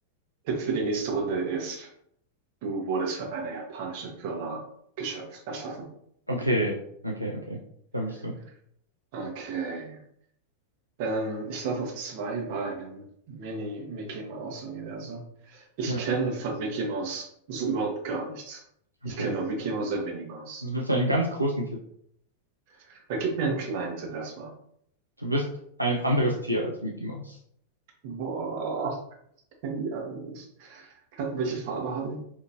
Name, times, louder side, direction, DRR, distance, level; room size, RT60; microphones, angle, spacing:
voice 1, 0.4-1.9 2.6-4.6 5.0-5.9 9.1-10.0 11.0-18.6 19.0-20.6 22.7-24.5 28.0-29.0 29.6-32.2, right 4 dB, 50° right, 1 dB, 0.9 m, -32 dB
voice 2, 6.3-6.8 7.0-7.6 7.9-8.3 15.9-16.0 19.0-19.3 20.6-21.7 25.2-25.5 25.8-27.4, right 1 dB, 85° right, -1 dB, 0.4 m, -27 dB
4.4 x 2.8 x 2.5 m, 0.69 s
figure-of-eight pair, 90°, 0 cm